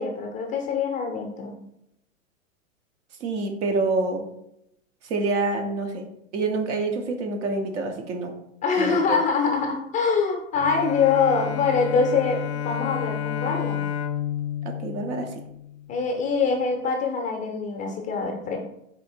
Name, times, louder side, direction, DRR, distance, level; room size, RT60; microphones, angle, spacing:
voice 1, 0.0-1.6 8.6-13.9 15.9-18.6, left 5 dB, 20° left, 1 dB, 0.5 m, -24 dB
voice 2, 3.2-4.2 5.0-6.0 6.3-8.3 8.8-9.2 14.6-15.3, right 3 dB, 60° right, 4 dB, 1.0 m, -27 dB
Bowed string instrument, 10.5-16.0, left 9 dB, 55° left, 0.7 m, -31 dB
4.2 x 2.8 x 4.3 m, 0.79 s
hypercardioid pair, 125°, 41 cm